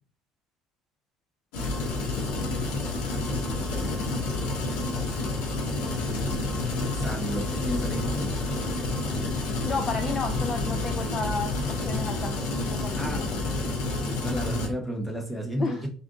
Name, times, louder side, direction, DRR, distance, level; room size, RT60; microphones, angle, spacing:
sound 1, 1.5-14.7, left 2 dB, 85° left, 1.4 m, -29 dB
voice 1, 6.9-8.4 13.0-13.5 14.0-15.9, equal, ahead, 0 dB, 1.0 m, -32 dB
voice 2, 9.6-13.2 15.6-15.9, left 4 dB, 20° left, 6 dB, 0.4 m, -32 dB
3.7 x 3.4 x 3.8 m, 0.41 s
cardioid pair, 170°, 0 cm